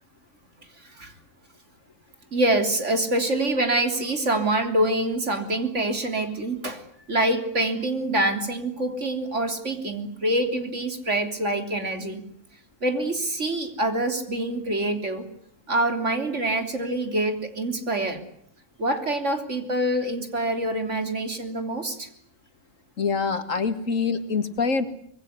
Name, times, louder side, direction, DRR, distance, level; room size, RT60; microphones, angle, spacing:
voice 1, 0.8-1.1 2.3-12.2 12.8-15.3 15.7-18.2 18.8-22.1, right 1 dB, 60° right, 6 dB, 3.7 m, -25 dB
voice 2, 23.0-24.9, left 5 dB, 75° left, 9 dB, 2.5 m, -25 dB
25.5 x 22.0 x 9.6 m, 0.63 s
omnidirectional pair, 1.4 m